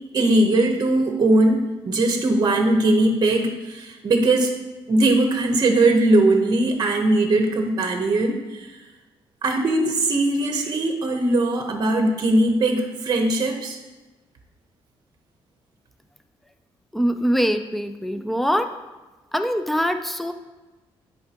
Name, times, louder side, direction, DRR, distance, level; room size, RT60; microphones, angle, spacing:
voice 1, 0.1-4.5 4.9-8.7 9.4-13.8, right 2 dB, 40° right, 3 dB, 0.9 m, -20 dB
voice 2, 16.9-18.7 19.3-20.3, equal, ahead, 8 dB, 0.5 m, -23 dB
10.0 x 4.5 x 2.9 m, 1.2 s
cardioid pair, 105°, 10 cm